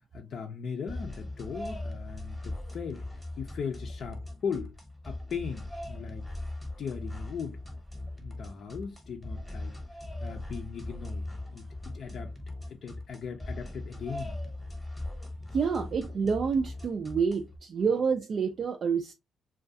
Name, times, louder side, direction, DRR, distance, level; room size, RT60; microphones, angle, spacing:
voice 1, 0.0-4.8 5.0-6.3 6.8-7.6 8.2-12.3 12.7-14.3, left 6 dB, 60° left, 0.4 m, -39 dB
sound 1, 0.9-17.6, left 1 dB, 10° left, 0.9 m, -40 dB
voice 2, 15.5-19.1, right 5 dB, 50° right, 0.3 m, -28 dB
2.3 x 2.2 x 2.6 m
cardioid pair, 90°, 0 cm